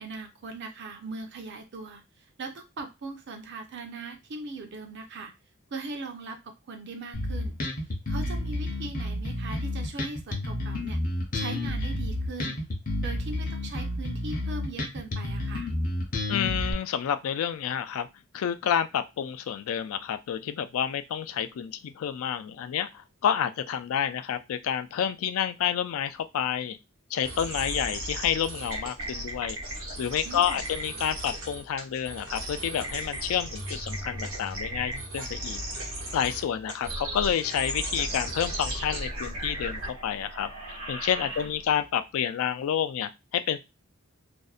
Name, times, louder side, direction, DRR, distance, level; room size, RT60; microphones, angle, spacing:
voice 1, 0.0-2.0 2.4-5.3 5.7-7.6 8.1-11.0 11.3-12.6 13.0-15.7 30.2-30.6 41.3-41.5, right 3 dB, 55° right, 5 dB, 0.6 m, -39 dB
Bass guitar, 7.1-16.7, left 1 dB, 40° left, 0.6 m, -30 dB
voice 2, 16.3-18.1 18.3-26.8 27.1-29.6 30.0-35.6 36.1-40.5 40.9-43.6, left 9 dB, 75° left, 11 dB, 0.3 m, -29 dB
sound 1, 27.2-41.8, right 1 dB, 90° right, 1.0 m, -36 dB
sound 2, 33.5-36.2, left 1 dB, 5° left, 0.4 m, -42 dB
2.6 x 2.1 x 2.3 m, 0.23 s
head